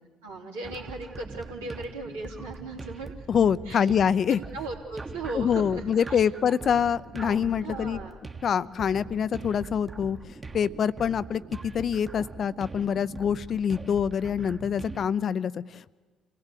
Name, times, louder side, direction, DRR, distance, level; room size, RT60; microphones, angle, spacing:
voice 1, 0.2-3.3 3.6-3.9 4.3-6.2 7.6-8.2, right 3 dB, 85° right, -1 dB, 3.3 m, -38 dB
sound 1, 0.6-15.1, right 3 dB, 25° right, 1.4 m, -42 dB
voice 2, 3.3-4.4 5.3-8.0 8.4-10.2 10.5-15.9, left 7 dB, 50° left, 17 dB, 0.6 m, -25 dB
27.5 x 16.5 x 8.4 m, 1.4 s
hypercardioid pair, 50°, 0 cm